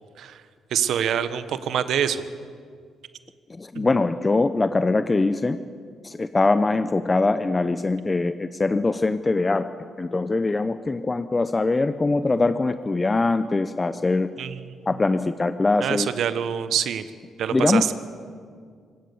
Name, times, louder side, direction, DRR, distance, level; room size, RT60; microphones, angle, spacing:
voice 1, 0.7-2.2 3.7-3.9 14.4-14.5 15.8-17.0 17.4-17.9, right 9 dB, 70° right, 12 dB, 1.2 m, -25 dB
voice 2, 3.5-5.6 6.0-9.7 10.0-14.3 14.9-16.1 17.5-17.8, left 3 dB, 25° left, 11 dB, 0.7 m, -22 dB
25.0 x 18.0 x 7.1 m, 2.1 s
cardioid pair, 90°, 0 cm